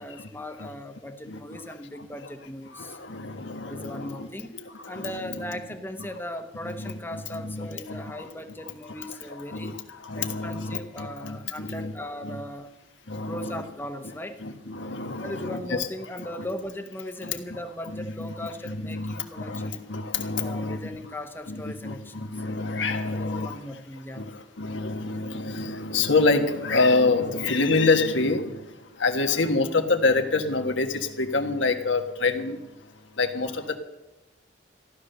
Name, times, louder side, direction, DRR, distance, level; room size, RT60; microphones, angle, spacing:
voice 1, 0.0-3.0 3.7-4.5 4.9-9.7 10.2-12.7 13.2-14.4 15.2-19.8 20.4-22.3 23.1-24.3, left 1 dB, 10° left, 7 dB, 1.1 m, -38 dB
voice 2, 2.7-4.3 4.5-5.6 6.6-8.3 9.0-11.9 12.2-12.4 13.1-13.6 14.4-15.9 16.2-16.5 17.2-17.3 17.9-18.3 18.6-20.8 21.5-23.6 24.1-28.6 29.0-32.6 33.2-33.8, left 3 dB, 80° left, 5 dB, 1.6 m, -27 dB
15.0 x 12.0 x 6.8 m, 1.0 s
head